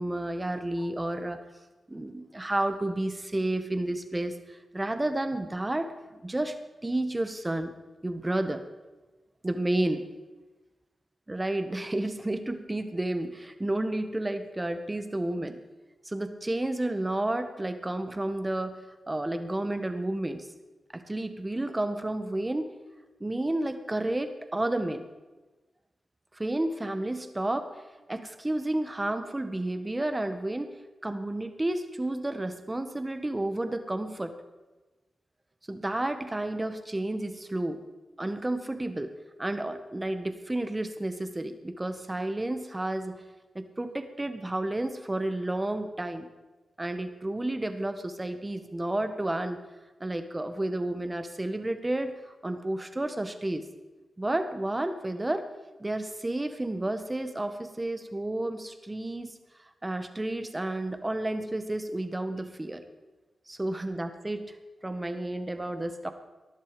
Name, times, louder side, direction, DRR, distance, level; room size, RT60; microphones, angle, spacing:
voice 1, 0.0-1.4 1.9-5.9 6.2-6.5 6.8-7.7 8.0-8.6 9.4-10.0 11.3-15.6 16.0-18.8 19.1-20.5 20.9-22.7 23.2-25.0 26.3-30.7 31.0-34.3 35.7-37.8 38.2-39.1 39.4-43.2 43.5-46.3 46.8-49.6 50.0-53.6 54.2-55.5 55.8-59.3 59.8-62.8 63.5-64.6 64.8-66.1, right 1 dB, 20° right, 8 dB, 1.7 m, -31 dB
19.0 x 11.5 x 5.2 m, 1.2 s
cardioid pair, 75°, 0 cm